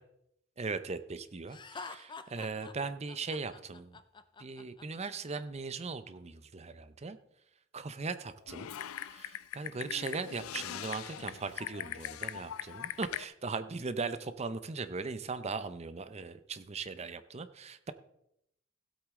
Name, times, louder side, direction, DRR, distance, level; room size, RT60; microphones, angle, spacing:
voice 1, 0.6-1.6 2.3-4.0 4.4-7.2 7.7-8.7 9.1-17.9, right 4 dB, 30° right, 12 dB, 0.6 m, -39 dB
Laughter, 1.5-5.4, left 4 dB, 20° left, 0.5 m, -47 dB
Typing, 8.5-13.2, left 10 dB, 90° left, 0.4 m, -41 dB
16.0 x 8.3 x 3.7 m, 0.80 s
head